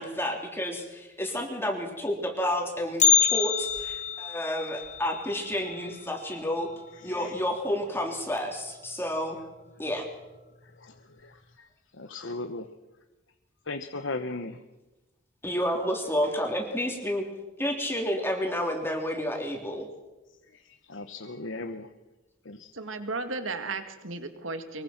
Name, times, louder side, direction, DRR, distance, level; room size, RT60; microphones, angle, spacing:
voice 1, 0.0-6.7 7.0-9.4 9.8-10.0 15.4-17.2 17.6-19.9, equal, 10° left, 1 dB, 3.4 m, -30 dB
Bell, 3.0-7.1 7.4-7.5 8.0-8.1 8.9-9.0 9.7-10.0 10.4-10.5, left 7 dB, 35° left, 1.0 m, -27 dB
voice 2, 6.9-7.4 9.4-9.5 10.6-12.7 13.6-14.6 20.3-21.9 22.4-22.7, left 2 dB, 65° left, 7 dB, 1.2 m, -38 dB
voice 3, 22.7-24.8, right 3 dB, 75° right, 8 dB, 2.2 m, -34 dB
23.5 x 23.0 x 6.0 m, 1.1 s
head